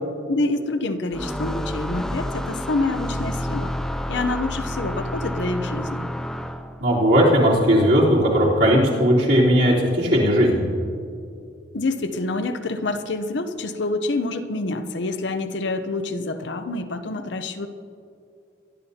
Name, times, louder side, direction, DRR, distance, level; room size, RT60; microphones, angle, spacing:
voice 1, 0.3-3.7 4.1-6.1 11.7-17.7, left 2 dB, 65° left, 9 dB, 0.7 m, -27 dB
sound 1, 1.1-6.8, equal, 5° left, 0.4 m, -29 dB
voice 2, 6.8-10.6, equal, 65° right, -6 dB, 3.7 m, -17 dB
23.0 x 12.5 x 2.8 m, 2.4 s
head